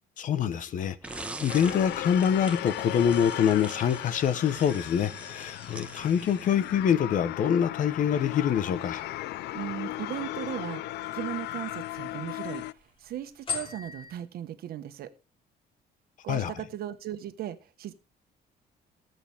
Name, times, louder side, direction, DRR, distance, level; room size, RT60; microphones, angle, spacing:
voice 1, 0.2-9.0 16.3-16.5, left 8 dB, 50° left, 1.1 m, -25 dB
sound 1, 1.0-6.9, right 2 dB, 5° right, 1.2 m, -43 dB
sound 2, 1.1-14.1, left 5 dB, 30° left, 5.1 m, -47 dB
sound 3, 1.5-12.7, left 16 dB, 80° left, 0.5 m, -36 dB
voice 2, 9.5-10.8 11.1-12.6 13.0-15.1 16.2-17.9, right 11 dB, 65° right, 1.4 m, -37 dB
19.0 x 8.0 x 3.5 m
cardioid pair, 165°, 17 cm